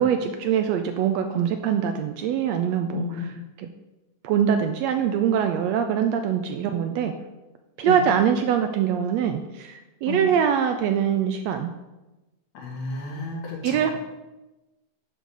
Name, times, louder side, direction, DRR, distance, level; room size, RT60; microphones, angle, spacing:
voice 1, 0.0-3.7 4.2-7.1 7.8-11.7 13.6-13.9, right 8 dB, 80° right, 6 dB, 1.6 m, -23 dB
voice 2, 12.5-13.8, left 3 dB, 65° left, -1 dB, 2.9 m, -32 dB
10.5 x 3.9 x 6.3 m, 1.1 s
omnidirectional pair, 3.4 m